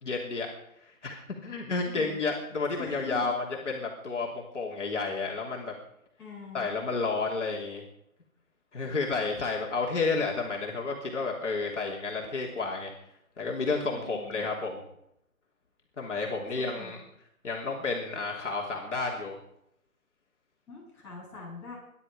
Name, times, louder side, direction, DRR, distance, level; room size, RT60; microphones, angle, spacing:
voice 1, 0.0-0.5 0.8-3.3 3.6-5.7 6.5-7.8 8.7-12.9 13.4-14.8 16.0-17.0 17.4-19.4, left 3 dB, 55° left, -2 dB, 3.1 m, -31 dB
voice 2, 1.8-2.2 2.8-3.3 6.2-6.7 13.9-14.5 16.6-16.9 20.7-21.7, left 4 dB, 5° left, -11 dB, 7.5 m, -43 dB
24.0 x 10.5 x 5.0 m, 0.77 s
hypercardioid pair, 175°, 43 cm